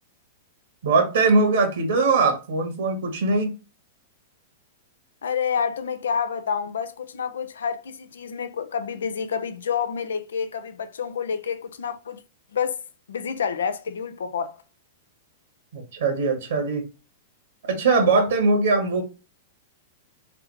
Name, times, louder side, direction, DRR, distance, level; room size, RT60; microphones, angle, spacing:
voice 1, 0.8-3.5 15.7-16.8 17.7-19.0, right 3 dB, 70° right, 1.3 m, -21 dB
voice 2, 5.2-12.2 12.5-12.8 13.1-14.6, left 7 dB, 75° left, 0.5 m, -28 dB
3.6 x 3.4 x 3.0 m
hypercardioid pair, 110°, 0 cm